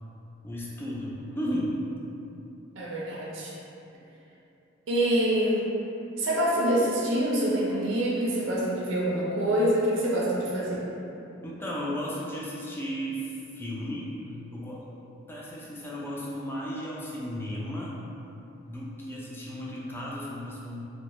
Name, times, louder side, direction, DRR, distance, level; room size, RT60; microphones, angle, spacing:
voice 1, 0.4-1.8 11.4-14.1 14.5-14.9 15.3-18.0 18.6-20.8, equal, 10° left, -6 dB, 0.4 m, -34 dB
voice 2, 2.8-3.5 4.9-5.7 6.2-10.8, right 1 dB, 70° right, -5 dB, 0.4 m, -26 dB
2.7 x 2.1 x 2.9 m, 2.8 s
head